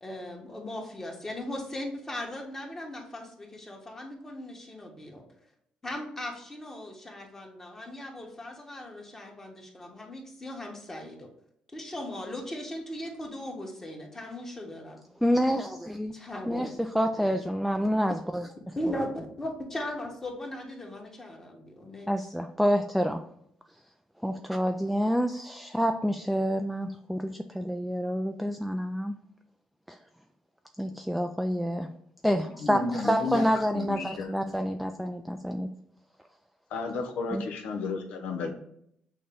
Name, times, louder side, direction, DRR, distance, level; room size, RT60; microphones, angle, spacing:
voice 1, 0.0-5.2 5.8-11.3 11.7-15.0 16.1-16.7 17.2-17.3 18.8-22.3, left 1 dB, 20° left, 1 dB, 1.2 m, -38 dB
voice 2, 15.2-16.1 16.5-18.5 22.1-23.2 24.2-29.2 29.9-30.0 30.8-31.9 32.2-35.7 37.3-37.4, equal, ahead, 5 dB, 0.3 m, -28 dB
voice 3, 32.4-33.5 33.7-34.3 36.7-38.5, left 4 dB, 85° left, 4 dB, 0.8 m, -33 dB
6.4 x 2.2 x 3.6 m, 0.71 s
cardioid pair, 95°, 2 cm